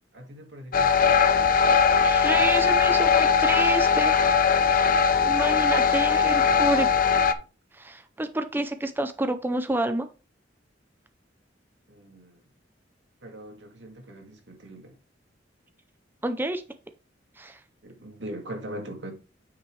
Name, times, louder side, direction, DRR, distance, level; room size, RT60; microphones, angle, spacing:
voice 1, 0.1-1.5 6.5-6.6 7.1-7.4 11.9-12.4 13.2-14.9 17.8-19.1, right 1 dB, 80° right, 2.1 m, -41 dB
sound 1, 0.7-7.3, left 6 dB, 50° left, 0.6 m, -20 dB
voice 2, 2.0-4.2 5.2-6.9 7.7-10.1 16.2-16.6 17.4-17.6, right 1 dB, 10° right, 0.5 m, -28 dB
9.4 x 5.4 x 3.2 m
head